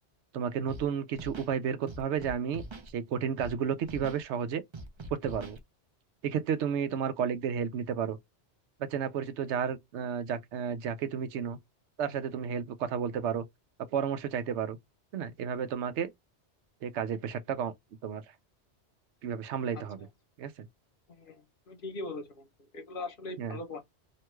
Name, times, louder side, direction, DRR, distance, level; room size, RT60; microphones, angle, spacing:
voice 1, 0.3-2.6 2.9-4.6 5.2-5.6 6.2-8.2 8.9-11.6 12.0-13.4 13.9-14.8 15.1-16.1 16.8-17.7 18.0-18.2 19.2-20.0 20.4-20.7 23.4-23.6, right 7 dB, 85° right, 0.9 m, -32 dB
Scratching (performance technique), 0.7-0.8 1.1-1.5 1.9-2.9 3.4-3.5 3.8-4.2 4.7-5.6, right 2 dB, 35° right, 0.5 m, -43 dB
voice 2, 19.7-20.1 21.1-22.5 22.7-23.8, left 2 dB, 55° left, 0.8 m, -41 dB
2.9 x 2.2 x 2.9 m
omnidirectional pair, 1.2 m